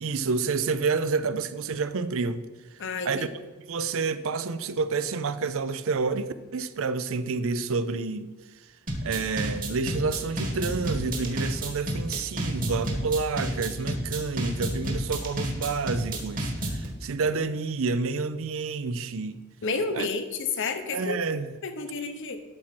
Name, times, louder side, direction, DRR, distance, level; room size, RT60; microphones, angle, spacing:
voice 1, 0.0-2.4 3.1-3.3 3.7-8.3 9.0-19.4 19.9-20.1 20.9-21.5, right 4 dB, 65° right, 0.5 m, -29 dB
voice 2, 2.8-3.3 19.6-21.2 21.6-22.4, left 4 dB, 60° left, 0.9 m, -30 dB
sound 1, 8.9-16.9, right 1 dB, 40° right, 1.7 m, -30 dB
12.0 x 4.4 x 5.9 m
head